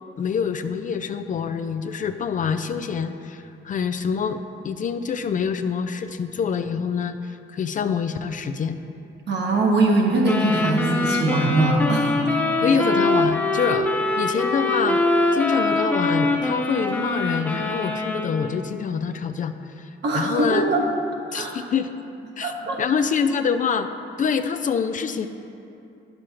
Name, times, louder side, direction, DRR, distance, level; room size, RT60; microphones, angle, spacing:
voice 1, 0.2-8.8 12.6-13.9 14.2-15.0 15.3-19.9 20.1-20.7 21.3-21.9 22.4-23.9 24.2-25.3, left 6 dB, 40° left, 9 dB, 0.4 m, -25 dB
voice 2, 9.3-12.4 20.0-20.8 21.3-21.5 22.4-22.8, right 2 dB, 60° right, -1 dB, 1.3 m, -21 dB
sound 1, 10.2-18.6, left 2 dB, 10° left, 0.9 m, -23 dB
9.8 x 6.3 x 3.0 m, 2.7 s
cardioid pair, 90°, 20 cm